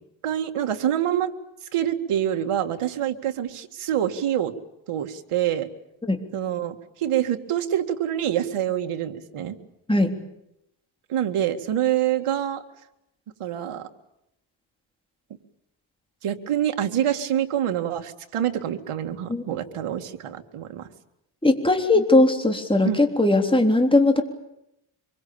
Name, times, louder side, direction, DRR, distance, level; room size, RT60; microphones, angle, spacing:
voice 1, 0.2-1.3 1.7-4.5 4.9-5.7 6.3-9.6 11.1-12.6 13.4-13.9 16.2-20.9 22.9-23.0, right 10 dB, 85° right, 6 dB, 2.2 m, -26 dB
voice 2, 21.4-24.2, left 2 dB, 10° left, 5 dB, 3.6 m, -19 dB
25.5 x 23.0 x 8.7 m, 0.84 s
cardioid pair, 105°, 50 cm